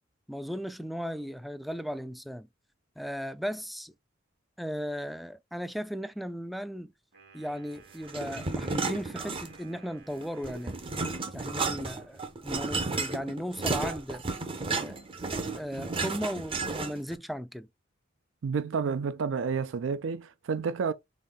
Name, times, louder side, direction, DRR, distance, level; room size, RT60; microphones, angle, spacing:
voice 1, 0.3-2.5 3.0-3.9 4.6-6.9 7.3-10.8 11.3-14.2 14.7-15.0 15.6-17.7, equal, ahead, 0.3 m, -36 dB
Wind instrument woodwind instrument, 7.1-11.6, right 4 dB, 55° right, 2.1 m, -56 dB
sound 1, 8.1-9.8 10.1-17.1, right 3 dB, 30° right, 0.7 m, -33 dB
voice 2, 18.4-20.9, right 5 dB, 75° right, 0.4 m, -30 dB
4.1 x 3.6 x 3.5 m
head